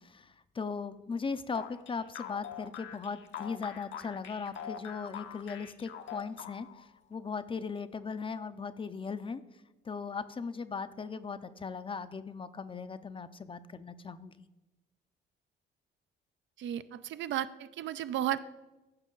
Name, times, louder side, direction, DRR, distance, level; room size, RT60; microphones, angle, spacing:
voice 1, 0.0-9.4 9.8-14.3, left 5 dB, 25° left, 13 dB, 0.5 m, -38 dB
sound 1, 1.5-6.9, left 8 dB, 70° left, 0.8 m, -44 dB
voice 2, 16.6-18.4, right 11 dB, 70° right, 13 dB, 0.5 m, -34 dB
14.5 x 5.5 x 3.8 m, 1.1 s
cardioid pair, 90°, 20 cm